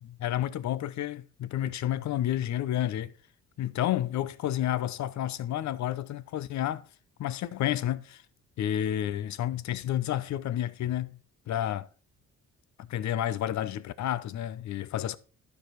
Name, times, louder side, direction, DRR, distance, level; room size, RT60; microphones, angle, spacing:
voice 1, 0.0-3.1 3.6-6.9 7.2-8.2 8.6-11.2 11.5-11.9 12.8-15.2, left 12 dB, 70° left, 0.7 m, -30 dB
12.0 x 4.9 x 4.5 m
cardioid pair, 90°, 30 cm